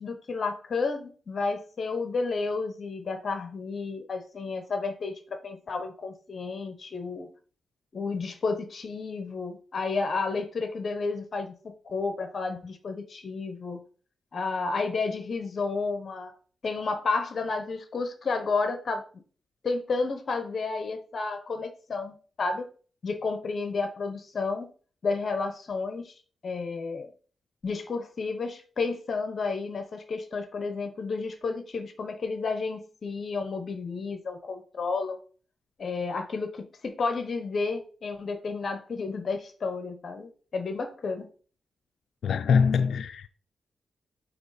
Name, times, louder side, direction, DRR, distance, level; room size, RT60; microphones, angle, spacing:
voice 1, 0.0-7.3 7.9-13.8 14.3-16.3 16.6-19.2 19.6-22.7 23.0-24.7 25.0-27.1 27.6-35.2 35.8-41.3, left 4 dB, 40° left, 0.8 m, -31 dB
voice 2, 42.2-43.3, left 6 dB, 70° left, 0.3 m, -23 dB
8.0 x 2.9 x 4.0 m
wide cardioid pair, 160°, 0 cm